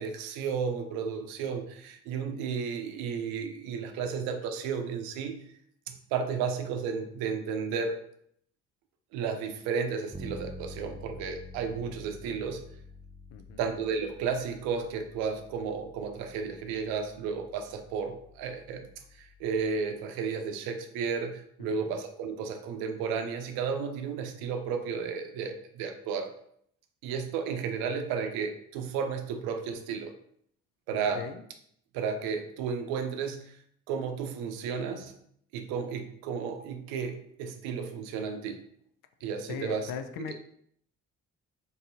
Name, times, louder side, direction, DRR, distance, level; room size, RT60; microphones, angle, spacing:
voice 1, 0.0-5.4 5.9-8.0 9.1-12.6 13.6-18.9 19.1-26.3 27.0-30.1 30.9-31.3 31.9-33.6 33.9-35.1 35.5-38.6 39.2-39.9 40.3-40.4, right 6 dB, 85° right, 7 dB, 0.5 m, -33 dB
Bass guitar, 10.1-19.9, left 2 dB, 15° right, 0.3 m, -48 dB
voice 2, 13.3-13.6 21.6-21.9 30.9-31.4 39.5-40.3, left 7 dB, 70° left, 9 dB, 0.5 m, -39 dB
3.9 x 2.7 x 2.6 m, 0.67 s
supercardioid pair, 60°, 35 cm